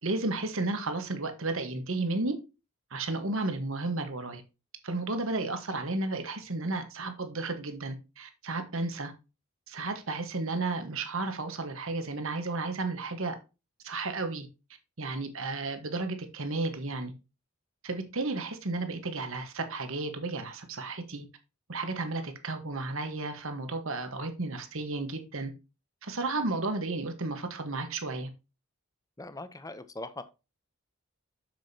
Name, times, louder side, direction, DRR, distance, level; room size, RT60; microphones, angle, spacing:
voice 1, 0.0-2.4 2.9-4.4 4.8-9.1 9.7-13.4 13.8-14.5 15.0-17.1 17.8-21.3 21.7-25.5 26.0-28.3, right 3 dB, 65° right, 1.3 m, -33 dB
voice 2, 29.2-30.2, left 2 dB, 15° left, 0.6 m, -41 dB
7.5 x 7.1 x 2.8 m
head